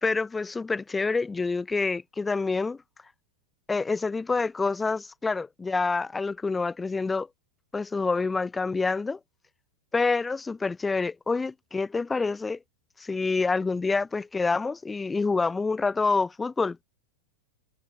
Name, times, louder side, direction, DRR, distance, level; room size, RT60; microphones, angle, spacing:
voice 1, 0.0-2.8 3.7-7.3 7.7-9.2 9.9-12.6 13.0-16.8, left 4 dB, 10° left, 0.5 m, -27 dB
figure-of-eight pair, 90°, 0 cm